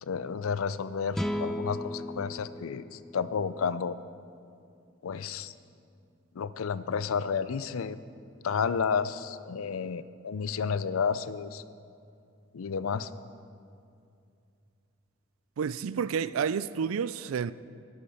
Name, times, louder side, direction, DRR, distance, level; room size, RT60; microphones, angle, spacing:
voice 1, 0.0-4.0 5.0-5.5 6.4-8.0 8.4-11.6 12.5-13.1, left 6 dB, 85° left, 0.5 m, -31 dB
sound 1, 1.1-4.4, left 1 dB, ahead, 0.4 m, -36 dB
voice 2, 15.6-17.5, right 7 dB, 85° right, 0.4 m, -30 dB
12.0 x 11.5 x 5.7 m
head